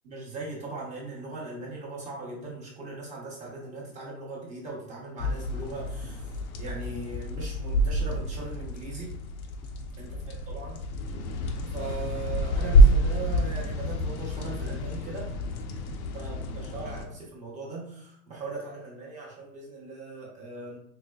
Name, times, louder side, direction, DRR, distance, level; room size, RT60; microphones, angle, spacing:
voice 1, 0.0-6.3 6.6-9.1 10.0-10.9 11.6-15.3 16.1-20.8, right 3 dB, 15° right, -5 dB, 0.8 m, -39 dB
sound 1, 5.2-17.0, equal, 80° left, 0.8 m, -27 dB
4.2 x 3.2 x 2.3 m, 0.71 s
supercardioid pair, 160°, 43 cm